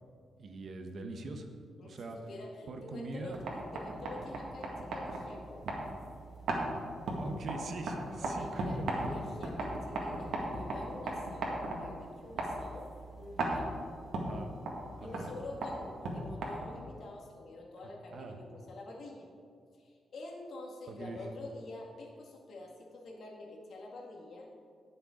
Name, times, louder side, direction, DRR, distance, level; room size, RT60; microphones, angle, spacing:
voice 1, 0.4-1.5 1.8-2.2 2.7-3.4 7.2-8.9 14.3-14.5 15.0-15.3 18.1-18.4 20.9-21.2, right 3 dB, 55° right, 5 dB, 1.1 m, -42 dB
voice 2, 1.8-3.4 3.7-5.6 8.2-13.7 15.0-19.3 19.8-24.5, left 2 dB, 65° left, 0 dB, 1.9 m, -47 dB
sound 1, 3.2-16.9, right 1 dB, 75° right, 1.9 m, -38 dB
18.0 x 6.8 x 3.8 m, 2.2 s
cardioid pair, 130°, 0 cm